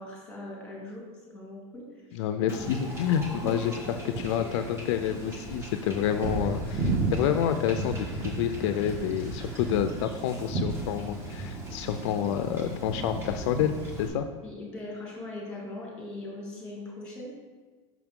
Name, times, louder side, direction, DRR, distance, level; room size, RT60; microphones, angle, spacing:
voice 1, 0.0-1.8 2.1-2.2 3.3-3.7 14.4-17.3, left 1 dB, 5° left, -4 dB, 2.1 m, -40 dB
voice 2, 2.1-3.8 4.0-13.7 14.0-14.3, left 9 dB, 65° left, 8 dB, 0.4 m, -28 dB
Wind / Ocean / Boat Water vehicle, 2.5-14.1, right 2 dB, 15° right, 1.0 m, -34 dB
5.9 x 5.8 x 3.6 m, 1.3 s
supercardioid pair, 150°, 16 cm